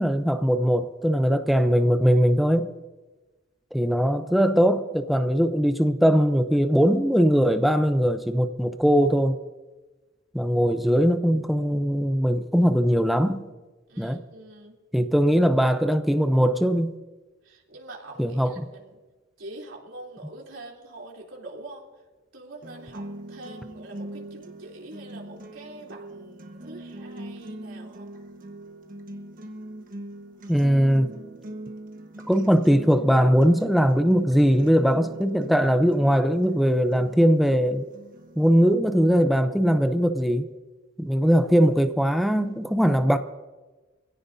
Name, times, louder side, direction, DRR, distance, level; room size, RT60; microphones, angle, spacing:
voice 1, 0.0-2.7 3.7-9.4 10.3-13.4 14.0-14.2 14.9-17.0 18.2-18.6 30.5-31.1 32.3-37.9 38.4-40.5 41.0-43.2, equal, ahead, 0.6 m, -20 dB
voice 2, 13.9-14.7 17.4-19.0 19.4-21.9 22.3-28.1, right 2 dB, 85° right, 3.3 m, -44 dB
sound 1, 22.6-38.6, right 1 dB, 45° right, 1.4 m, -42 dB
25.0 x 16.5 x 2.7 m
head